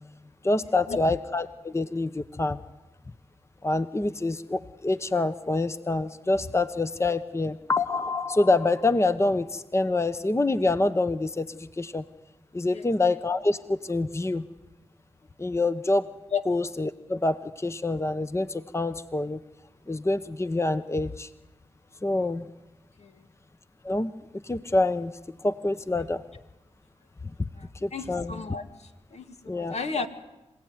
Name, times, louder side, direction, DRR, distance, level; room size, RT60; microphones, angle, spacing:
voice 1, 0.4-2.6 3.6-12.0 12.5-14.4 15.4-16.1 16.5-19.4 19.9-21.3 22.0-22.5 23.8-24.1 24.4-25.1 25.4-26.2 27.8-28.4 29.5-29.7, left 2 dB, 25° left, 12 dB, 0.9 m, -26 dB
voice 2, 27.6-30.1, left 5 dB, 65° left, 7 dB, 1.9 m, -33 dB
26.0 x 16.5 x 9.6 m, 1.0 s
cardioid pair, 45°, 12 cm